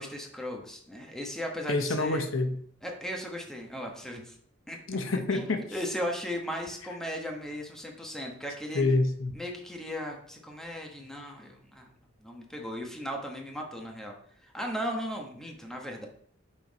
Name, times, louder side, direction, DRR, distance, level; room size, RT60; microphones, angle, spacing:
voice 1, 0.0-2.2 2.8-4.4 4.7-4.8 5.3-8.8 9.3-11.9 12.2-14.1 14.4-16.1, equal, 5° left, 1 dB, 1.1 m, -37 dB
voice 2, 1.7-2.5 4.9-5.6 8.7-9.4, left 2 dB, 75° left, 7 dB, 0.8 m, -27 dB
5.8 x 4.6 x 5.2 m, 0.63 s
head